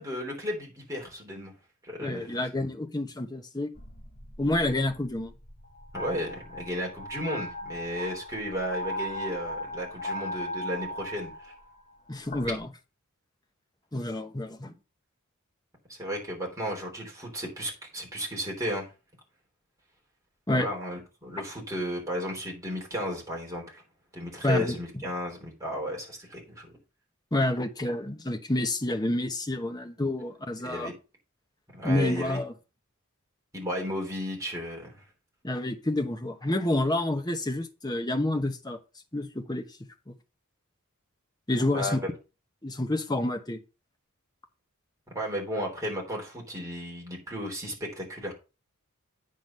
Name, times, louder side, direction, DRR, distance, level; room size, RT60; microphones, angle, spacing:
voice 1, 0.0-1.5 1.8-2.4 5.9-11.5 15.9-18.9 20.5-23.8 24.1-26.7 30.6-30.9 31.7-32.4 33.5-35.0 41.7-42.0 45.1-48.3, equal, 15° right, 3.4 m, -34 dB
voice 2, 2.0-3.7 4.4-5.3 12.1-12.7 13.9-14.7 20.5-20.7 24.4-25.0 27.3-30.9 31.8-32.5 35.4-38.8 39.1-39.6 40.1-40.2 41.5-42.0 42.6-43.6, left 1 dB, 20° left, 1.0 m, -28 dB
sound 1, 3.8-12.7, equal, 35° left, 1.5 m, -38 dB
9.2 x 3.9 x 6.6 m
head